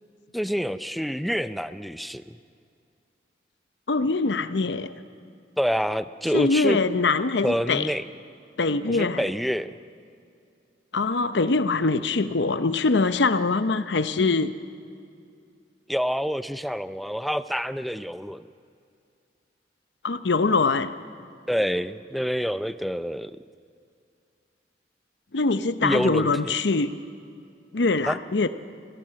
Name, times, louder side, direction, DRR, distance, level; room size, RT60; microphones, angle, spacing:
voice 1, 0.3-2.3 5.6-6.8 7.4-8.0 8.9-9.7 15.9-18.5 21.5-23.3 25.8-26.5 28.1-28.2, equal, ahead, 13 dB, 0.4 m, -27 dB
voice 2, 3.9-4.9 6.3-7.9 8.6-9.3 10.9-14.5 20.0-20.9 25.3-26.9 27.7-28.5, left 3 dB, 85° left, 11 dB, 0.8 m, -23 dB
26.0 x 17.0 x 7.6 m, 2.4 s
head